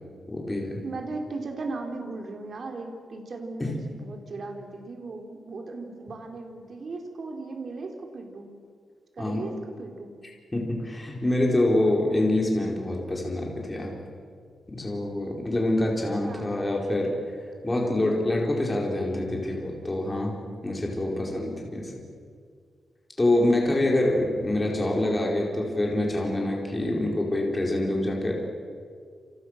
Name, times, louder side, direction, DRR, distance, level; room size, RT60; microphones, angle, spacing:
voice 1, 0.3-0.8 3.6-3.8 9.2-9.4 10.5-14.0 14.7-17.1 17.6-20.4 20.6-21.9 23.2-28.3, left 1 dB, 15° left, -1 dB, 4.8 m, -26 dB
voice 2, 0.8-8.5 9.1-9.5 9.8-10.1 16.2-16.5 23.3-23.6, right 3 dB, 45° right, 3 dB, 4.2 m, -37 dB
28.5 x 28.5 x 6.7 m, 2.1 s
wide cardioid pair, 160°, 0 cm